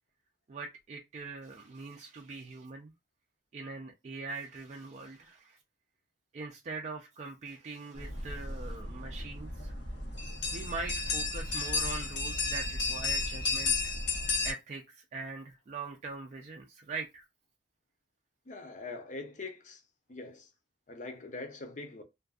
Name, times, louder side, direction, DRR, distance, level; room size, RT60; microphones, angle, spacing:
voice 1, 0.5-2.9 3.5-5.6 6.3-9.7 10.5-13.9 14.4-17.2, right 3 dB, 40° right, 0.3 m, -42 dB
sound 1, 8.0-14.5, left 3 dB, 90° left, 0.8 m, -33 dB
voice 2, 18.5-19.8 20.1-20.5 20.9-22.0, left 3 dB, 45° left, 0.6 m, -43 dB
2.5 x 2.4 x 2.3 m
head